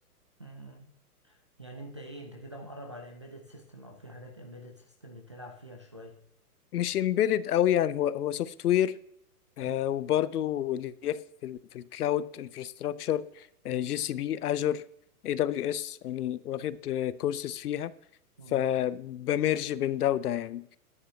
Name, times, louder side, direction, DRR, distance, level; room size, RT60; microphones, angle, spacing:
voice 1, 0.4-0.9 1.2-6.2 9.7-9.8 13.7-13.8 18.4-18.7, right 1 dB, 20° right, 0.4 m, -46 dB
voice 2, 6.7-9.0 9.6-14.8 15.2-17.9 18.5-20.8, left 11 dB, 75° left, 0.7 m, -29 dB
11.0 x 9.6 x 2.7 m
hypercardioid pair, 155°, 46 cm